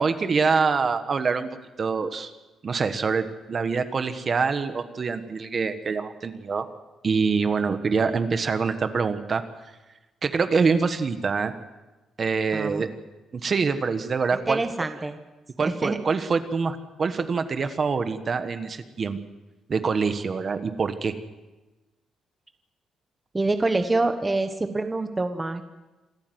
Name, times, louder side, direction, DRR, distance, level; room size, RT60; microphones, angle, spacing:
voice 1, 0.0-1.5 1.8-2.3 2.6-6.6 7.0-9.4 10.2-11.5 12.2-12.9 13.3-14.6 15.6-19.2 19.7-21.1, right 5 dB, 35° right, 9 dB, 1.2 m, -25 dB
voice 2, 12.5-12.8 14.3-15.2 15.6-16.0 23.3-25.6, right 2 dB, 15° right, 7 dB, 1.1 m, -26 dB
27.0 x 13.5 x 7.9 m, 1.1 s
cardioid pair, 155°, 0 cm